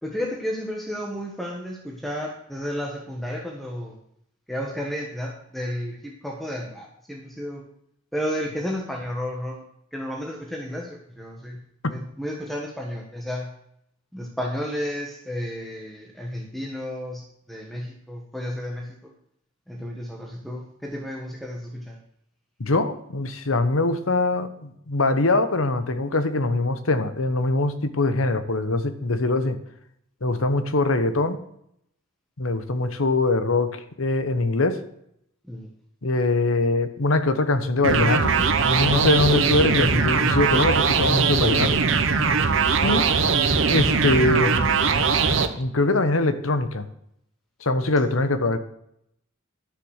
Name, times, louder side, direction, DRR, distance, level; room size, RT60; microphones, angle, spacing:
voice 1, 0.0-4.0 4.5-7.6 8.1-9.6 9.9-11.6 11.9-13.5 14.1-17.2 17.5-18.9 19.7-22.0 35.5-35.7, equal, ahead, -1 dB, 1.4 m, -32 dB
voice 2, 22.6-29.6 30.2-31.4 32.4-34.8 36.0-41.8 42.8-43.1 43.7-44.7 45.6-46.9 47.6-48.6, left 2 dB, 80° left, 10 dB, 1.1 m, -23 dB
sound 1, 37.8-45.5, right 5 dB, 65° right, 1.0 m, -21 dB
11.5 x 6.7 x 6.5 m, 0.74 s
head